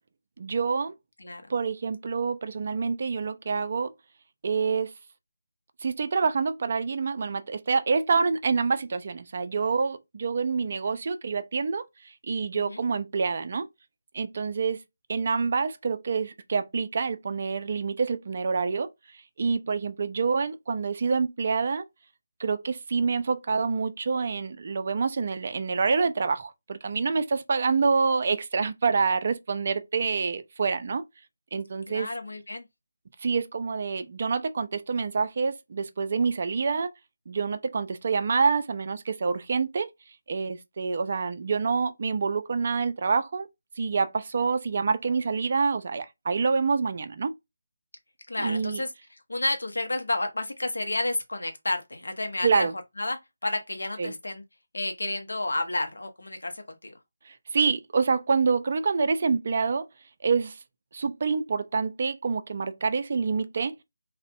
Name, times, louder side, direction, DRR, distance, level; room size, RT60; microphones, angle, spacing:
voice 1, 0.4-0.9 1.5-3.9 4.4-4.9 5.8-11.8 12.3-13.7 14.1-14.8 15.1-18.9 19.4-21.8 22.4-31.0 31.5-32.1 33.2-36.9 37.3-39.9 40.3-43.5 43.8-47.3 48.4-48.8 52.4-52.7 54.0-54.1 57.5-59.8 60.2-60.6 60.9-63.7, right 5 dB, 45° right, 0.3 m, -27 dB
voice 2, 31.9-32.7 48.3-52.7 53.0-54.4 54.7-56.9, left 2 dB, 75° left, 0.5 m, -31 dB
2.5 x 2.0 x 2.4 m
figure-of-eight pair, 160°, 0 cm